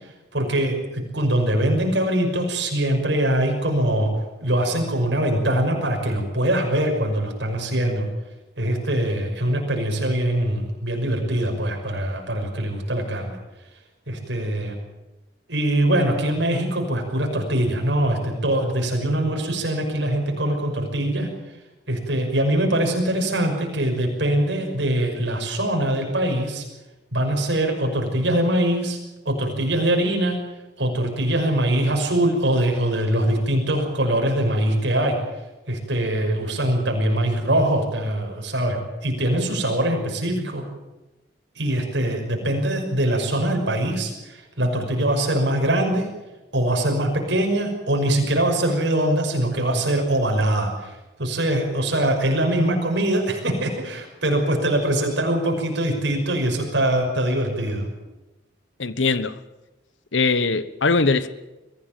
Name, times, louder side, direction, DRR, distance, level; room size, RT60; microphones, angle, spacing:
voice 1, 0.3-4.1 4.4-8.1 8.6-13.4 14.1-14.7 15.5-21.3 21.9-26.7 27.1-29.0 29.2-30.4 30.8-35.2 35.7-40.6 41.6-46.1 46.5-57.9, right 1 dB, 70° right, 6.0 m, -23 dB
voice 2, 58.8-59.4 60.1-61.3, left 4 dB, 85° left, 1.1 m, -21 dB
23.0 x 16.0 x 9.2 m
head